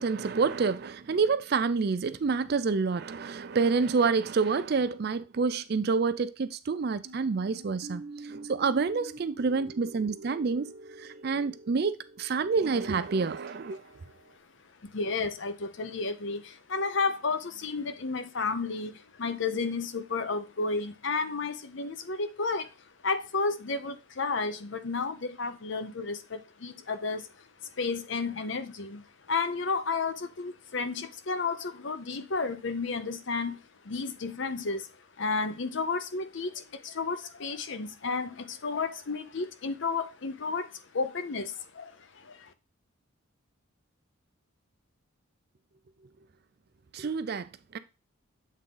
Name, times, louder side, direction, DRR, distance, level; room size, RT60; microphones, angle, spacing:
voice 1, 0.0-8.0 8.3-10.7 11.0-13.8 46.9-47.8, right 4 dB, 50° right, 0.4 m, -28 dB
sound 1, 7.0-14.4, right 2 dB, 70° right, 0.9 m, -47 dB
voice 2, 14.8-22.7 23.0-33.6 33.8-34.9 35.2-42.5, left 4 dB, 60° left, 0.7 m, -32 dB
7.6 x 3.7 x 3.8 m
head